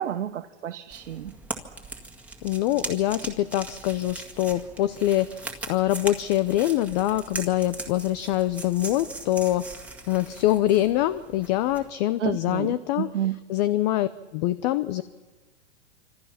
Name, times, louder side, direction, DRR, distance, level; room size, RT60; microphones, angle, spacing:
voice 1, 0.0-1.3 12.2-13.4, right 10 dB, 80° right, 7 dB, 1.3 m, -30 dB
sound 1, 0.9-11.9, right 2 dB, 5° right, 2.0 m, -40 dB
voice 2, 2.4-9.7 10.1-13.1 13.5-15.0, left 14 dB, 35° left, 14 dB, 0.8 m, -24 dB
26.5 x 26.0 x 5.8 m, 1.3 s
hypercardioid pair, 140°, 36 cm